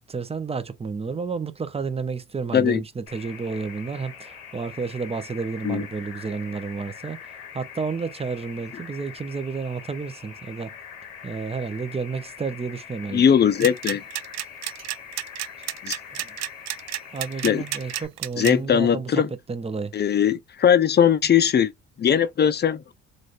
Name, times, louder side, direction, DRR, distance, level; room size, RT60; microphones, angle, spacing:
voice 1, 0.1-10.7 11.2-13.2 16.1-16.4 17.1-19.2 19.5-19.9, right 4 dB, 20° right, 0.7 m, -31 dB
sound 1, 3.1-18.0, left 8 dB, 90° left, 1.0 m, -43 dB
voice 2, 13.1-14.0 15.8-16.0 17.4-17.6 18.4-19.3 19.9-21.7 22.0-22.9, left 8 dB, 35° left, 0.6 m, -20 dB
sound 2, 13.6-18.5, right 13 dB, 60° right, 0.5 m, -30 dB
3.1 x 2.6 x 2.5 m
hypercardioid pair, 60°, 31 cm